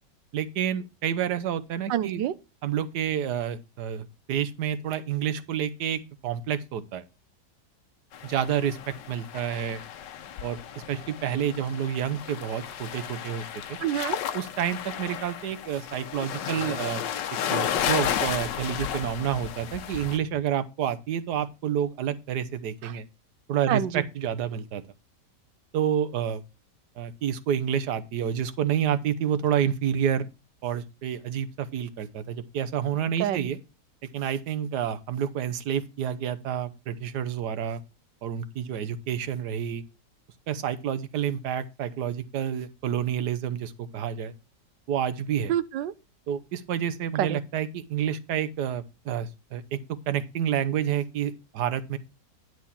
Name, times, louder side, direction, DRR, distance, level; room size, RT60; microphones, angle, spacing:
voice 1, 0.3-2.2 2.6-7.0 8.2-8.8 9.1-9.8 10.4-10.6 10.9-13.8 14.3-17.0 17.5-23.0 23.5-24.8 25.7-26.4 27.0-30.3 30.6-33.6 34.1-37.8 38.2-39.8 40.5-44.3 44.9-45.5 46.3-49.8 50.1-52.0, right 9 dB, 70° right, 1.5 m, -29 dB
voice 2, 1.9-2.3 13.8-14.2 22.8-22.9 23.7-24.0 33.2-33.5 45.5-45.9 47.2-47.4, right 11 dB, 90° right, 1.4 m, -27 dB
sound 1, 8.1-20.2, left 9 dB, 80° left, 1.5 m, -33 dB
10.5 x 6.3 x 4.2 m
omnidirectional pair, 1.9 m